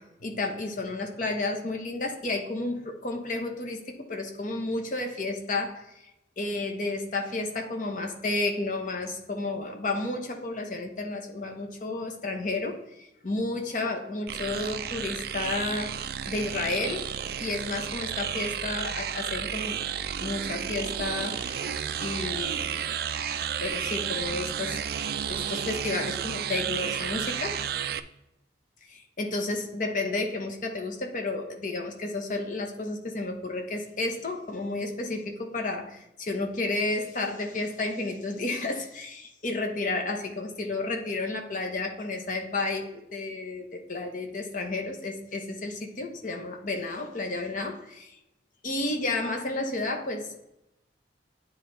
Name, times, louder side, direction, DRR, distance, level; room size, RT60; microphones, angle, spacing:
voice 1, 0.0-6.1 6.4-16.0 16.3-19.8 20.2-22.9 23.6-24.8 25.3-27.7 28.9-48.2 48.6-50.4, left 2 dB, 45° left, 4 dB, 1.0 m, -32 dB
sound 1, 14.3-28.0, right 8 dB, 55° right, 0.4 m, -32 dB
9.2 x 4.0 x 3.3 m, 0.90 s
head